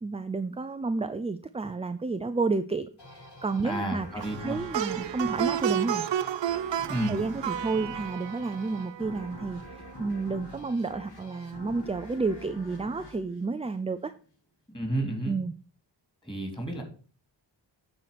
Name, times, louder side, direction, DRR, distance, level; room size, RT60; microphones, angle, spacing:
voice 1, 0.0-4.1 4.4-6.1 7.1-14.1 15.3-15.5, right 3 dB, 15° right, 10 dB, 0.3 m, -31 dB
sound 1, 3.0-14.2, left 1 dB, 65° left, 3.4 m, -46 dB
voice 2, 3.6-4.6 6.9-7.2 14.7-15.4 16.2-16.8, right 1 dB, 10° left, 3 dB, 2.8 m, -31 dB
Plucked string instrument, 4.2-9.4, right 10 dB, 75° right, 0.6 m, -32 dB
9.0 x 4.5 x 5.9 m, 0.40 s
wide cardioid pair, 110°, 44 cm